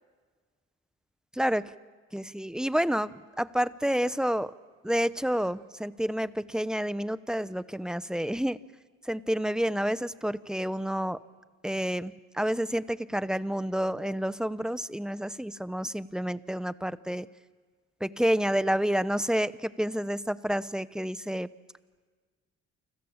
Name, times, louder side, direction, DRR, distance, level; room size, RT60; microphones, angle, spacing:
voice 1, 2.1-4.5 4.8-8.6 9.0-11.2 11.6-17.3 18.0-21.5, equal, ahead, 15 dB, 0.9 m, -29 dB
29.0 x 25.5 x 7.3 m, 1.5 s
cardioid pair, 90°, 30 cm